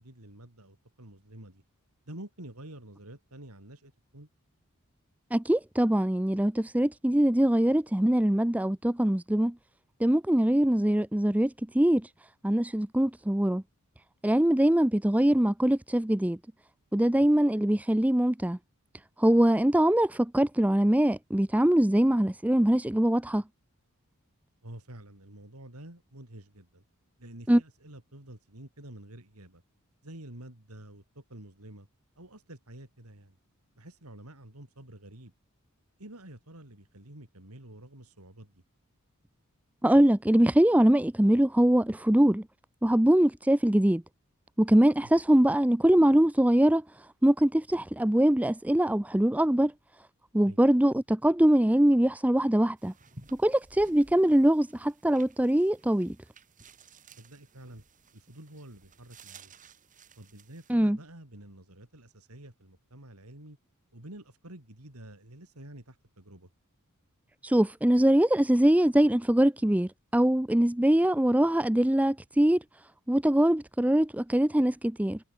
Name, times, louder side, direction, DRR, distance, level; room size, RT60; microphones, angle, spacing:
voice 1, 0.0-1.6 2.0-4.3 24.6-26.8 27.2-29.6 30.0-31.9 32.2-33.4 33.8-35.3 36.0-38.6 45.0-45.1 50.4-50.6 57.2-57.8 58.1-59.5 60.2-63.6 63.9-66.5, right 1 dB, 85° right, 4.4 m, -48 dB
voice 2, 5.3-9.5 10.0-12.1 12.4-13.6 14.2-16.4 16.9-18.6 19.2-23.4 27.5-27.6 39.8-42.4 42.8-44.0 44.6-46.8 47.2-49.7 50.3-52.9 53.4-56.2 60.7-61.0 67.4-72.6 73.1-75.2, right 1 dB, 5° right, 0.5 m, -23 dB
sound 1, 52.8-60.7, right 4 dB, 35° right, 7.7 m, -55 dB
head